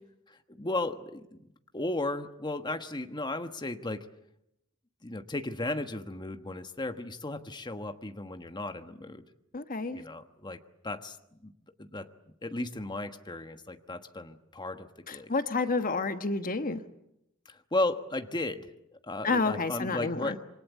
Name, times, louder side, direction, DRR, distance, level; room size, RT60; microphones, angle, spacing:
voice 1, 0.3-1.5 1.7-4.1 5.0-9.2 9.9-10.6 10.8-11.2 11.4-11.5 11.8-12.1 12.4-15.3 17.5-20.4, left 2 dB, 20° left, 7 dB, 1.3 m, -35 dB
voice 2, 9.5-10.0 15.1-16.8 19.2-20.4, left 3 dB, 40° left, 9 dB, 1.2 m, -29 dB
27.5 x 24.5 x 8.4 m, 0.83 s
head